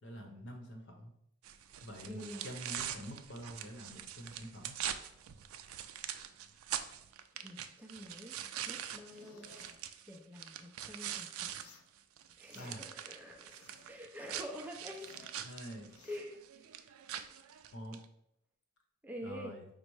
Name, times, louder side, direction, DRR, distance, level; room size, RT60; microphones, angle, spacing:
voice 1, 0.0-1.1 1.8-4.8 12.5-12.9 15.4-15.9 17.7-18.0 19.2-19.7, equal, 55° left, 3 dB, 0.8 m, -46 dB
sound 1, 1.4-11.6 12.0-18.0, right 10 dB, 80° right, 0.3 m, -43 dB
voice 2, 2.1-2.5 7.4-8.4 8.7-9.5 10.1-11.5 12.4-15.1 16.0-16.7 19.0-19.6, equal, 10° right, 1 dB, 0.5 m, -47 dB
sound 2, 9.1-9.8 11.5-11.9 12.3-13.0 13.3-14.0 14.3-15.4 15.8-16.2, left 3 dB, 85° left, 0.5 m, -59 dB
5.3 x 2.1 x 4.7 m, 0.76 s
head